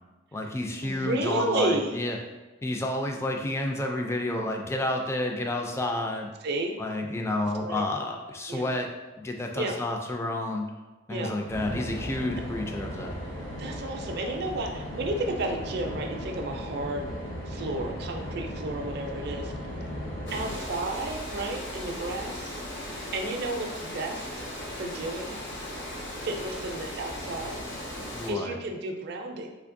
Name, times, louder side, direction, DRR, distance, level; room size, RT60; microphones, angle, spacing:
voice 1, 0.3-2.2 2.6-6.3 6.8-8.9 9.2-10.6 11.1-13.2 28.1-28.6, left 1 dB, 15° left, 2 dB, 0.3 m, -30 dB
voice 2, 0.8-2.0 6.4-6.7 7.6-7.8 8.5-8.7 9.6-9.8 11.1-11.4 13.6-17.1 17.5-19.5 20.3-24.3 24.8-25.4 26.2-27.6 28.3-29.5, right 2 dB, 60° right, 3 dB, 0.4 m, -32 dB
sound 1, 11.5-20.6, equal, 85° left, 1.2 m, -36 dB
Water, 20.3-28.3, left 1 dB, 65° left, 0.7 m, -37 dB
3.4 x 3.1 x 2.5 m, 1.2 s
head